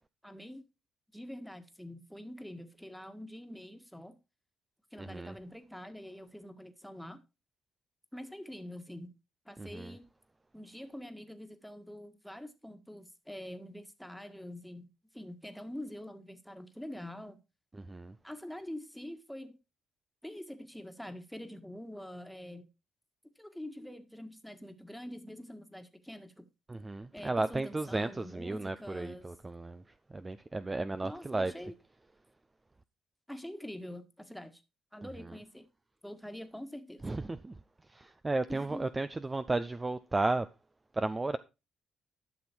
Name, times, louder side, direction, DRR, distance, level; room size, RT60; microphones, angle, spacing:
voice 1, 0.2-0.6 1.1-4.1 4.9-7.2 8.1-9.1 9.4-10.0 10.5-14.9 15.1-17.4 18.2-19.5 20.2-22.7 23.4-26.4 27.1-29.2 31.0-31.8 33.3-34.6 34.9-35.7 36.0-37.0 38.5-38.9, left 1 dB, ahead, 1.6 m, -45 dB
voice 2, 5.0-5.3 9.6-9.9 17.9-18.1 26.7-29.8 30.1-31.5 37.0-37.5 37.9-40.5 40.9-41.4, right 2 dB, 20° right, 0.5 m, -34 dB
12.0 x 6.2 x 4.5 m
cardioid pair, 90°, 0 cm